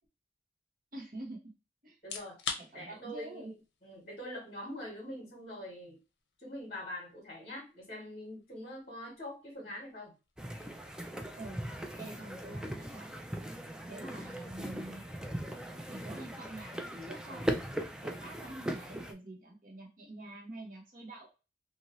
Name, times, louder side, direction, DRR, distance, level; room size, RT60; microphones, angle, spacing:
voice 1, 0.9-1.5 1.8-2.0 2.6-3.5 11.3-11.7 12.0-13.2 13.9-15.0 15.9-17.5 18.0-21.3, right 2 dB, 50° right, 0 dB, 1.1 m, -46 dB
sound 1, 1.9-16.8, left 5 dB, 70° left, 0.6 m, -50 dB
voice 2, 2.0-2.4 2.7-3.5 3.8-6.0 6.4-10.1 12.5-12.6, left 1 dB, 35° left, -2 dB, 1.2 m, -44 dB
sound 2, 10.4-19.1, right 1 dB, 5° right, 0.3 m, -39 dB
2.7 x 2.7 x 3.0 m, 0.30 s
head